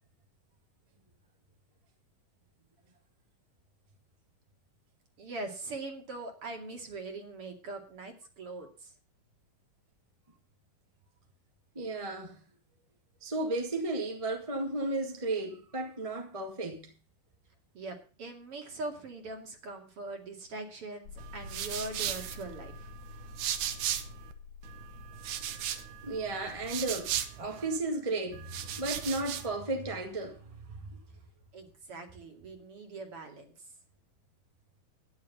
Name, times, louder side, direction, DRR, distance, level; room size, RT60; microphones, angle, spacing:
voice 1, 5.2-8.9 17.7-22.9 31.5-33.7, right 2 dB, 45° right, 3.1 m, -42 dB
voice 2, 11.7-12.4 13.2-16.9 26.0-30.9, right 2 dB, 15° right, 1.4 m, -34 dB
sound 1, 21.0-27.2, left 6 dB, 60° left, 2.5 m, -50 dB
sound 2, 21.2-24.3 24.6-27.8 28.3-29.6, right 10 dB, 75° right, 2.5 m, -37 dB
11.5 x 10.5 x 5.5 m
omnidirectional pair, 3.7 m